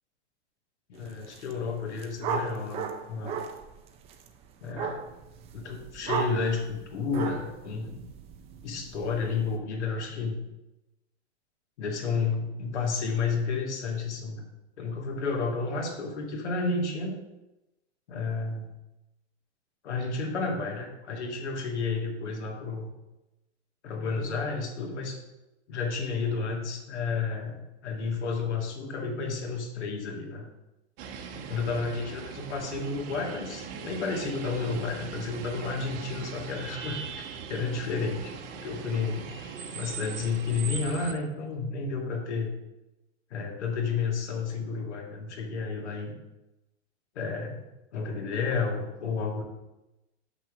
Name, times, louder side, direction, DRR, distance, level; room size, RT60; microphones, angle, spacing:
voice 1, 0.9-3.4 4.6-5.0 5.5-8.0 8.6-10.4 11.8-14.4 14.8-17.2 18.1-18.7 19.8-22.9 23.8-25.2 25.7-30.5 31.3-37.2 37.5-38.3 38.6-39.3 39.7-42.5 43.3-46.2 47.2-47.6 47.9-49.4, left 4 dB, 75° left, 1 dB, 2.0 m, -31 dB
sound 1, 1.1-1.5 1.8-9.6, right 6 dB, 20° right, 0.5 m, -36 dB
sound 2, 31.0-41.1, right 6 dB, 55° right, 1.1 m, -40 dB
6.0 x 5.4 x 6.2 m, 0.97 s
hypercardioid pair, 135°, 35 cm